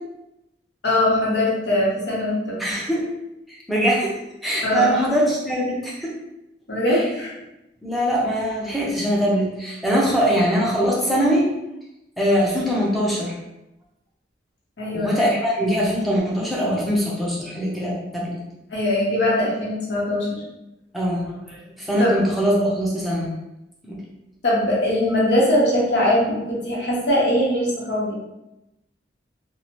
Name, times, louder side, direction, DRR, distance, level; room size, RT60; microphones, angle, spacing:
voice 1, 0.8-2.6 4.6-5.0 6.7-7.3 14.8-15.2 18.7-20.4 22.0-22.1 24.4-28.1, left 1 dB, 70° left, -5 dB, 0.9 m, -21 dB
voice 2, 2.6-3.0 3.5-4.1 4.4-6.1 6.9-7.0 7.8-11.5 12.2-13.4 14.9-18.4 20.9-23.3 23.8-24.0, equal, ahead, -5 dB, 0.5 m, -22 dB
2.7 x 2.0 x 2.9 m, 0.91 s
head